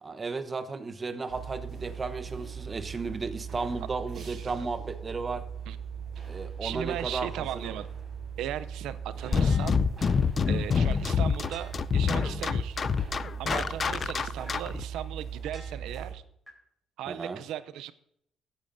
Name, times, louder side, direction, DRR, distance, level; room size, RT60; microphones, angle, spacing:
voice 1, 0.0-5.5 6.3-7.7 17.1-17.4, right 4 dB, 35° right, 0.9 m, -34 dB
sound 1, 1.3-16.1, right 7 dB, 55° right, 4.2 m, -39 dB
voice 2, 4.2-4.5 5.7-5.8 6.6-7.9 8.4-9.8 10.5-12.8 13.4-16.2 17.0-17.9, right 11 dB, 90° right, 0.5 m, -37 dB
sound 2, 9.3-14.8, left 6 dB, 45° left, 0.4 m, -26 dB
sound 3, 9.5-10.0 10.5-10.6 11.0-11.1 11.5-12.0 12.5-12.6 13.0-13.1 13.5-14.0 14.5-14.6 15.0-15.1 15.5-16.0 16.5-16.6, left 1 dB, 5° left, 4.4 m, -51 dB
17.0 x 8.7 x 2.6 m
cardioid pair, 90°, 0 cm